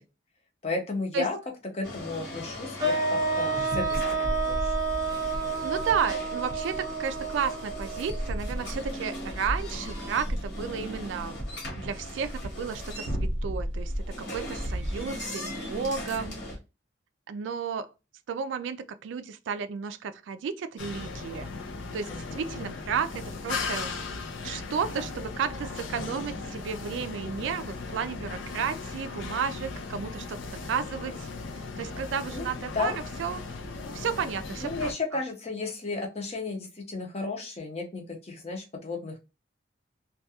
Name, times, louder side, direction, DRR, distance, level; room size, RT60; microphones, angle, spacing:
voice 1, 0.6-1.4 1.7-4.8 22.1-22.6 32.3-33.0 34.6-39.2, left 3 dB, 35° left, 0.6 m, -34 dB
sound 1, 1.8-16.6, equal, 55° left, 1.1 m, -35 dB
sound 2, 2.8-8.9, right 3 dB, 20° right, 0.5 m, -30 dB
voice 2, 5.6-11.4 11.8-13.9 14.2-16.4 17.3-17.9 18.3-21.5 21.9-23.9 24.4-30.4 30.7-31.3 31.8-32.9 33.2-33.4 33.9-34.9, right 6 dB, 80° right, 0.3 m, -32 dB
sound 3, 20.8-34.9, left 4 dB, 85° left, 0.5 m, -37 dB
2.3 x 2.2 x 2.7 m
head